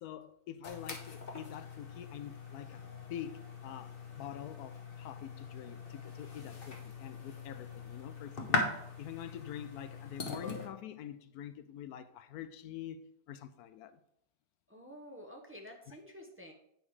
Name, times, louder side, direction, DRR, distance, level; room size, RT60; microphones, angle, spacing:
voice 1, 0.0-8.7 9.0-14.0 15.9-16.0, left 10 dB, 90° left, 1.1 m, -46 dB
sound 1, 0.6-10.7, left 3 dB, 40° left, 1.3 m, -41 dB
voice 2, 14.7-16.5, equal, 10° right, 1.0 m, -50 dB
9.1 x 5.4 x 4.9 m
omnidirectional pair, 1.6 m